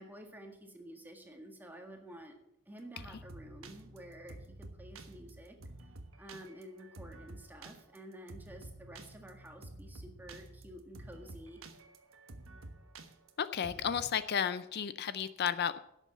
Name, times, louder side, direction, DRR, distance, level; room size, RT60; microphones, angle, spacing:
voice 1, 0.0-2.4 2.7-5.6 6.2-11.6, right 1 dB, 10° right, 3 dB, 1.8 m, -51 dB
sound 1, 2.8-14.0, right 2 dB, 75° right, 1.3 m, -50 dB
voice 2, 13.4-15.8, left 8 dB, 55° left, 13 dB, 0.4 m, -33 dB
11.0 x 7.3 x 7.3 m, 0.82 s
head